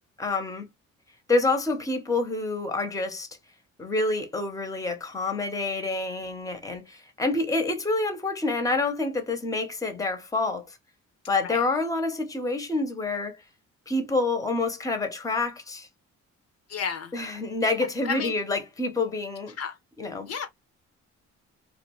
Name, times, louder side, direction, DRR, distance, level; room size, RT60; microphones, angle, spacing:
voice 1, 0.2-0.7 1.3-3.3 3.8-10.8 11.3-13.4 13.9-15.9 17.1-19.5 20.0-20.3, left 3 dB, 10° left, 0.7 m, -27 dB
voice 2, 16.7-17.1 18.0-18.3 19.6-19.8 20.3-20.5, left 6 dB, 55° left, 0.5 m, -31 dB
2.4 x 2.3 x 2.9 m
cardioid pair, 90°, 30 cm